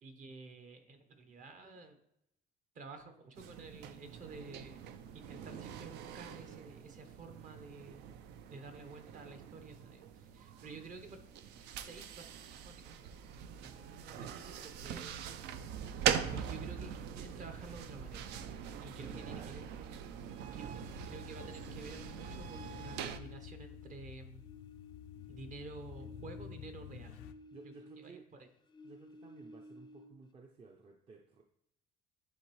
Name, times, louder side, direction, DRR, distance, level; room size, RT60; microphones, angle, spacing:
voice 1, 0.0-2.0 2.7-4.8 5.1-8.0 8.5-11.2 11.6-12.9 13.6-18.3 18.8-20.0 20.5-24.4 25.3-27.2 28.0-28.5, right 3 dB, 50° right, 7 dB, 1.0 m, -51 dB
sound 1, 3.3-23.2, right 8 dB, 85° right, 0.4 m, -42 dB
voice 2, 14.0-14.5 19.0-19.6 27.5-28.2 28.8-31.4, right 4 dB, 35° right, 2 dB, 0.6 m, -55 dB
sound 2, 20.8-27.3, left 9 dB, 90° left, 0.4 m, -51 dB
sound 3, 21.6-24.1 24.4-28.3 28.6-30.3, left 3 dB, 25° left, 0.4 m, -54 dB
10.0 x 3.4 x 3.1 m, 0.79 s
cardioid pair, 110°, 17 cm